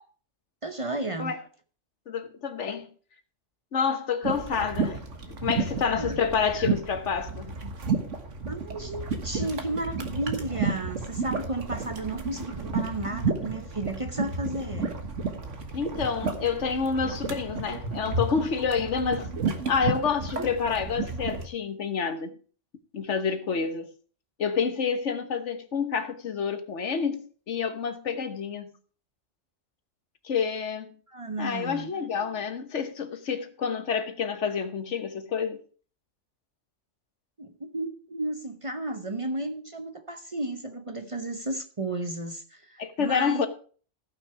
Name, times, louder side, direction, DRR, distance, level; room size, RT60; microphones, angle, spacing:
voice 1, 0.6-1.3 5.7-6.2 8.5-15.0 23.5-23.6 31.1-31.9 37.4-43.5, right 2 dB, 30° right, 0.8 m, -33 dB
voice 2, 2.1-2.9 3.7-5.0 5.3-7.6 15.7-19.3 19.7-22.3 22.9-23.9 24.4-28.7 30.2-30.9 31.4-35.6 42.8-43.5, left 6 dB, 75° left, 1.5 m, -28 dB
sound 1, 4.2-21.5, right 4 dB, 90° right, 1.8 m, -32 dB
15.5 x 6.1 x 4.7 m
omnidirectional pair, 1.2 m